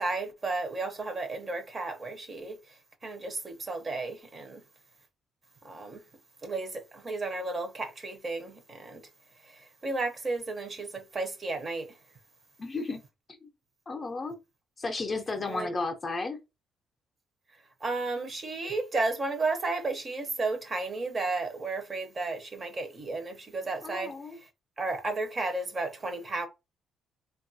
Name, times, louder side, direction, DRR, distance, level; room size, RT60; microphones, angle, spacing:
voice 1, 0.0-2.6 3.0-4.6 5.6-6.0 6.4-9.0 9.8-11.9 15.5-15.7 17.8-24.1 24.8-26.5, right 3 dB, 30° right, 0.6 m, -33 dB
voice 2, 12.6-13.0 13.3-13.5 13.9-14.4 14.8-16.4 23.8-24.4, left 3 dB, 25° left, 0.5 m, -33 dB
3.4 x 2.3 x 2.6 m
cardioid pair, 130°, 0 cm